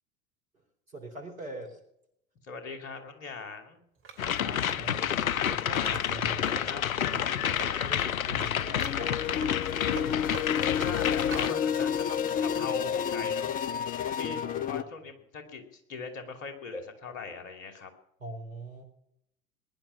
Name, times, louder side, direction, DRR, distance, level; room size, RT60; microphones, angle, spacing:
voice 1, 0.9-1.8 4.3-9.2 14.4-14.9 18.2-18.8, right 2 dB, 75° right, 3 dB, 4.0 m, -43 dB
voice 2, 2.5-3.8 6.7-6.8 10.7-13.6 14.0-14.4 14.7-17.9, left 4 dB, 60° left, 6 dB, 2.9 m, -40 dB
Wood, 4.0-6.7 7.0-8.1 8.4-11.6 12.0-12.7, right 6 dB, 30° right, 2.9 m, -44 dB
sound 1, 4.2-11.5, left 9 dB, 80° left, 0.5 m, -29 dB
sound 2, 8.8-14.8, left 8 dB, 20° left, 0.5 m, -30 dB
19.5 x 10.5 x 5.9 m, 0.77 s
figure-of-eight pair, 80°, 41 cm